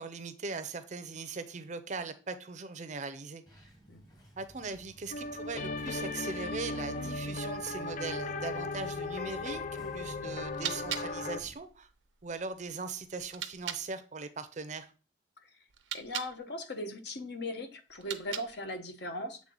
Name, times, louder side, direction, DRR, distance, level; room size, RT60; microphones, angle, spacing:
voice 1, 0.0-3.4 4.4-9.6 9.9-11.9 12.2-14.9, right 4 dB, 40° right, 0.5 m, -40 dB
Subway metro underground, 3.5-11.6, right 1 dB, 20° left, 1.1 m, -53 dB
sound 1, 5.1-11.4, left 3 dB, 40° left, 0.4 m, -37 dB
sound 2, 10.5-13.9 15.7-16.4 17.9-18.7, right 10 dB, 85° right, 0.6 m, -41 dB
voice 2, 15.9-19.4, left 1 dB, 60° left, 0.8 m, -38 dB
7.4 x 3.7 x 3.8 m
head